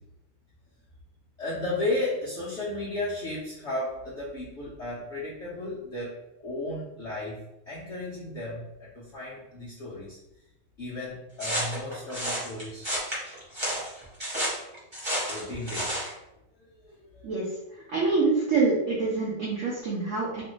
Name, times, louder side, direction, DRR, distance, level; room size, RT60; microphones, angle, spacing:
voice 1, 1.4-7.4 7.7-10.2 10.8-13.2 15.3-16.0 16.6-17.4, left 2 dB, 65° left, -8 dB, 0.6 m, -34 dB
sound 1, 11.4-16.1, equal, 35° right, 0.4 m, -31 dB
voice 2, 17.9-20.4, right 4 dB, 75° right, -5 dB, 0.6 m, -25 dB
3.1 x 2.5 x 3.0 m, 0.90 s
omnidirectional pair, 2.1 m